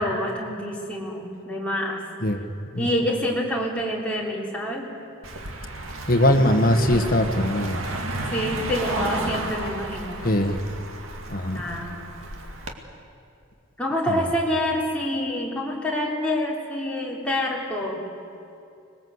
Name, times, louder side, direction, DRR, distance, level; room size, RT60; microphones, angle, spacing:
voice 1, 0.0-2.0 2.8-4.9 6.8-7.1 8.3-10.3 11.5-12.1 13.8-18.0, left 1 dB, 5° left, -3 dB, 3.3 m, -27 dB
Car passing by, 5.2-12.7, right 2 dB, 75° right, 2.1 m, -32 dB
voice 2, 6.1-7.8 10.2-10.6 11.3-11.6 14.1-14.2, left 1 dB, 45° left, 5 dB, 1.4 m, -21 dB
25.5 x 20.5 x 8.0 m, 2.6 s
head